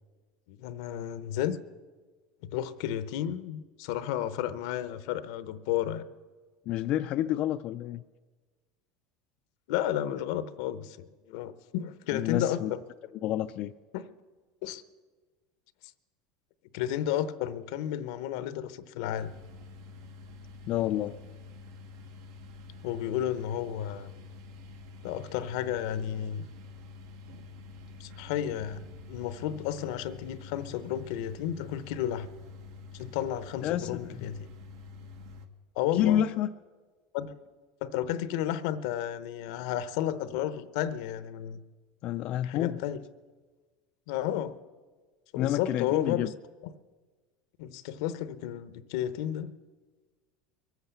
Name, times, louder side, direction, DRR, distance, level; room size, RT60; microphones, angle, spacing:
voice 1, 0.5-1.6 2.4-6.0 9.7-12.6 13.9-14.0 14.6-14.8 16.7-19.3 22.8-24.1 25.0-26.5 28.0-32.3 32.9-34.5 35.8-36.2 37.1-37.3 37.8-41.6 42.4-43.0 44.1-44.5 45.3-46.3 47.6-49.5, left 11 dB, 75° left, 13 dB, 0.8 m, -32 dB
voice 2, 6.7-8.0 12.1-12.7 13.2-13.7 20.7-21.2 33.6-34.2 35.9-36.5 42.0-42.9 45.4-46.3, left 12 dB, 45° left, 8 dB, 0.4 m, -29 dB
sound 1, 19.2-35.5, left 3 dB, 75° right, 1.3 m, -47 dB
23.0 x 8.0 x 6.9 m, 1.4 s
supercardioid pair, 140°, 3 cm